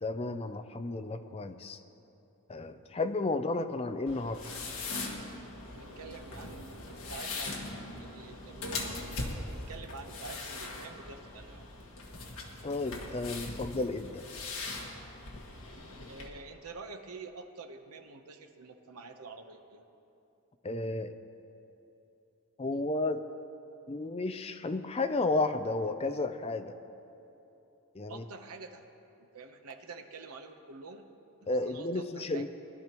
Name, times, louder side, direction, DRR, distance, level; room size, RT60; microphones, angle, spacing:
voice 1, 0.0-1.8 2.5-4.4 12.6-14.2 20.6-21.1 22.6-23.2 23.9-26.7 27.9-28.2 31.5-32.5, left 2 dB, 25° left, 9 dB, 0.5 m, -32 dB
sound 1, 4.1-16.3, left 3 dB, 70° left, 1.7 m, -41 dB
voice 2, 5.7-6.7 7.1-9.1 9.5-11.7 16.1-19.8 28.1-28.9 29.2-31.0 31.4-32.5, right 3 dB, 80° right, 6 dB, 0.9 m, -47 dB
21.0 x 11.5 x 3.0 m, 3.0 s
head